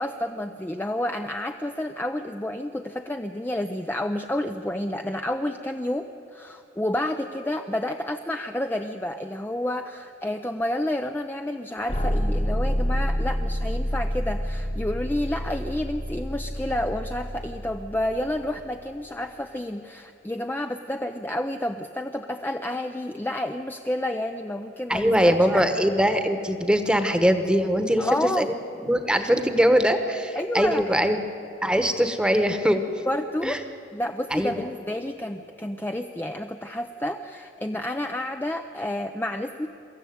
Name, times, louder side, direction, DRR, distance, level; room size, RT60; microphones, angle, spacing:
voice 1, 0.0-25.9 28.0-28.5 30.4-31.0 33.1-33.6 33.9-39.7, left 1 dB, 10° left, 6 dB, 0.5 m, -30 dB
sound 1, 11.9-18.8, equal, 35° left, 1.3 m, -28 dB
voice 2, 24.9-28.1 28.4-28.5 28.8-31.2 31.6-32.8 33.4-33.6 34.3-34.6, equal, 5° right, 8 dB, 1.1 m, -22 dB
23.5 x 14.0 x 9.3 m, 2.9 s
head